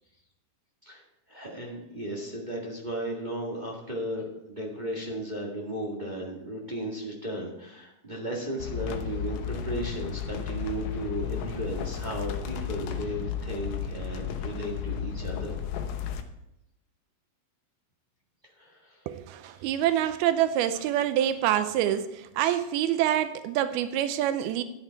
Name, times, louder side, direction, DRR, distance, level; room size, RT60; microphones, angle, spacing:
voice 1, 1.3-15.6 18.6-19.0 19.7-19.8 22.4-22.6, right 1 dB, 50° right, 0.5 m, -35 dB
sound 1, 8.6-16.2, left 8 dB, 70° left, 2.3 m, -33 dB
voice 2, 19.1-24.6, right 11 dB, 90° right, 2.6 m, -26 dB
13.0 x 9.8 x 4.6 m
omnidirectional pair, 4.3 m